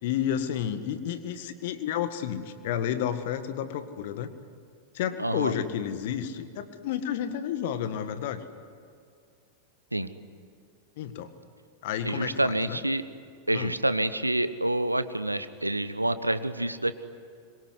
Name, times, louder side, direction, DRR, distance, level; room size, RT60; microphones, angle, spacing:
voice 1, 0.0-4.3 4.9-8.4 11.0-11.3 11.8-12.8 13.5-13.7, left 9 dB, 50° left, 10 dB, 1.8 m, -31 dB
voice 2, 5.2-5.5 9.9-10.1 12.0-13.0 13.5-16.9, right 1 dB, 85° right, 13 dB, 1.1 m, -27 dB
25.5 x 23.5 x 9.7 m, 2.3 s
figure-of-eight pair, 90°, 0 cm